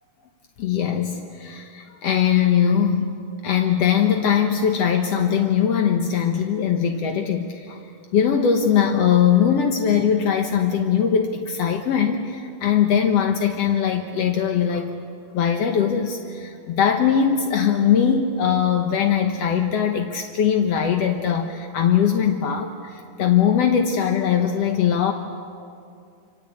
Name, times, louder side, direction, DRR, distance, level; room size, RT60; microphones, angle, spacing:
voice 1, 0.6-3.1 3.4-7.8 8.1-14.9 15.3-25.1, left 8 dB, 65° left, 4 dB, 1.6 m, -21 dB
26.5 x 26.0 x 8.6 m, 2.4 s
omnidirectional pair, 4.4 m